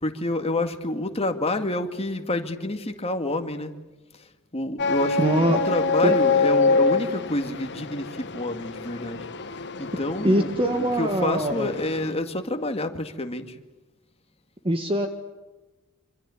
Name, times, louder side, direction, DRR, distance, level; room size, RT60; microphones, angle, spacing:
voice 1, 0.0-3.7 4.5-9.3 9.8-13.6, left 2 dB, 30° left, 6 dB, 2.1 m, -28 dB
sound 1, 4.8-12.1, left 4 dB, 55° left, 1.4 m, -26 dB
voice 2, 5.2-5.6 6.0-6.2 10.2-11.7 14.6-15.1, right 1 dB, 25° right, 5 dB, 1.8 m, -23 dB
26.5 x 26.0 x 8.5 m, 1.1 s
head